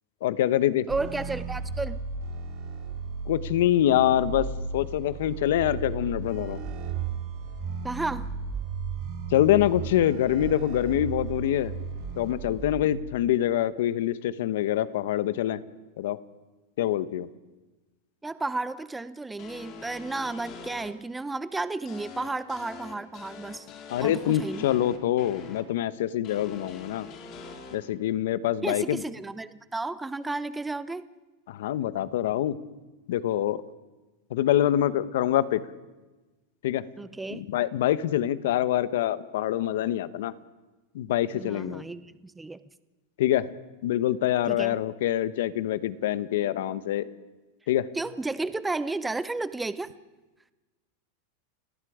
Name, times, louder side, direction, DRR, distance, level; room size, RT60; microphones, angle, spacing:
voice 1, 0.2-0.9 3.3-4.5 4.7-6.6 9.3-11.7 12.1-15.6 16.0-16.2 16.8-17.3 23.9-27.1 27.7-29.0 31.5-32.6 33.1-33.6 34.3-35.6 36.6-36.8 37.3-40.3 40.9-41.8 43.2-43.5 43.8-47.1 47.7-47.9, left 12 dB, 70° left, 15 dB, 1.0 m, -25 dB
voice 2, 0.9-2.0 7.8-8.3 18.2-23.7 24.0-24.7 28.6-31.1 37.0-37.4 41.3-42.6 44.5-44.8 47.9-49.9, right 3 dB, 5° right, 14 dB, 0.7 m, -33 dB
sound 1, 0.9-12.8, right 5 dB, 45° right, 4.0 m, -35 dB
sound 2, 19.4-20.9 21.9-25.6 26.2-27.8, left 5 dB, 35° left, 2.7 m, -44 dB
29.5 x 18.5 x 5.0 m, 1.2 s
supercardioid pair, 155°, 0 cm